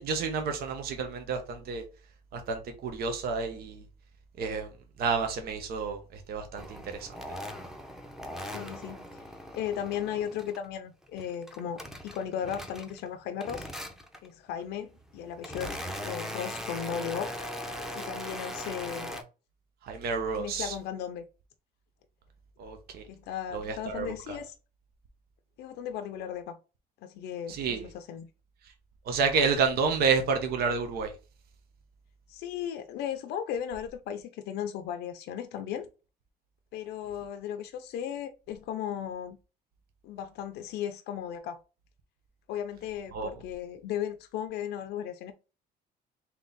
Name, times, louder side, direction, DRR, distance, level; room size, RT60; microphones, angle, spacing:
voice 1, 0.0-1.8 2.3-3.8 4.4-4.7 5.0-7.1 19.8-20.7 22.6-23.0 23.5-24.4 27.5-27.9 29.1-31.1 43.1-43.3, right 5 dB, 65° right, 0.9 m, -30 dB
sound 1, 6.6-10.7 11.0-13.1 13.4-14.3 14.9-19.2, equal, ahead, 0.7 m, -40 dB
voice 2, 8.5-9.2 9.5-13.7 14.2-15.8 16.0-17.3 17.9-19.2 20.4-21.3 23.1-24.6 25.6-26.6 27.0-28.3 32.3-35.9 36.7-39.4 40.0-41.6 42.5-45.3, left 9 dB, 75° left, 0.5 m, -36 dB
3.7 x 2.9 x 3.8 m
cardioid pair, 110°, 17 cm